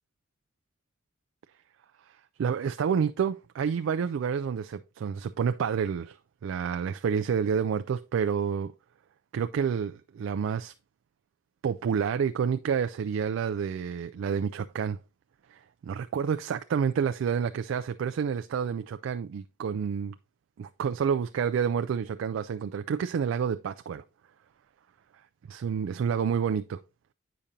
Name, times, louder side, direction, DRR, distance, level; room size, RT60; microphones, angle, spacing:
voice 1, 2.4-6.2 6.4-8.7 9.3-10.7 11.6-15.0 15.5-20.1 20.6-24.0 25.5-26.8, right 7 dB, 80° right, 0.3 m, -29 dB
8.6 x 5.1 x 2.7 m
head